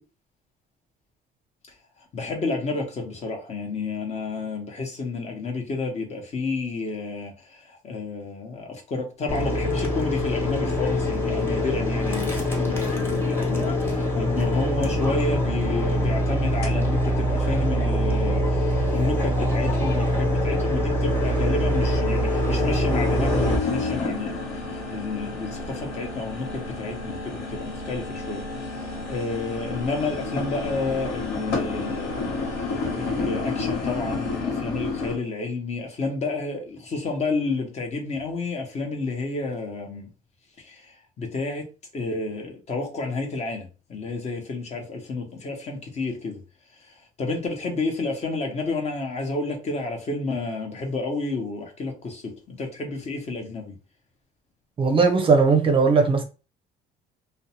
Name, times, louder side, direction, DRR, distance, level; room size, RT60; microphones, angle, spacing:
voice 1, 2.1-24.4 24.7-28.4 28.8-40.1 40.6-41.7 41.9-46.4 47.2-53.7, left 3 dB, 40° left, 0.8 m, -30 dB
sound 1, 9.3-23.6, equal, 15° left, 1.0 m, -24 dB
sound 2, 16.6-16.7 17.2-17.3 18.0-18.1 19.3-19.4 19.8-20.4 20.7-35.2, left 3 dB, 75° left, 1.0 m, -31 dB
voice 2, 54.8-56.2, right 4 dB, 30° right, 0.5 m, -18 dB
2.5 x 2.1 x 2.8 m
cardioid pair, 110°, 17 cm